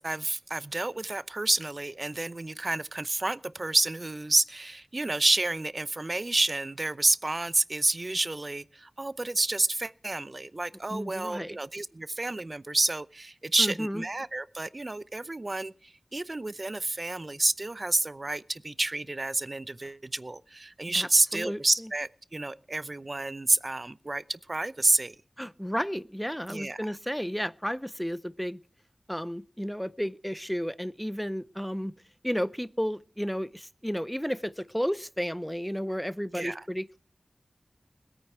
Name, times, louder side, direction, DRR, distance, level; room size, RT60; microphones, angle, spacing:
voice 1, 0.0-25.2 26.5-26.9 36.3-36.6, right 2 dB, 45° right, 0.7 m, -29 dB
voice 2, 10.9-11.6 13.6-14.0 20.9-21.6 25.4-28.6 29.1-31.9 32.2-37.0, equal, 5° left, 0.5 m, -32 dB
20.5 x 9.1 x 4.4 m
wide cardioid pair, 45°, 0 cm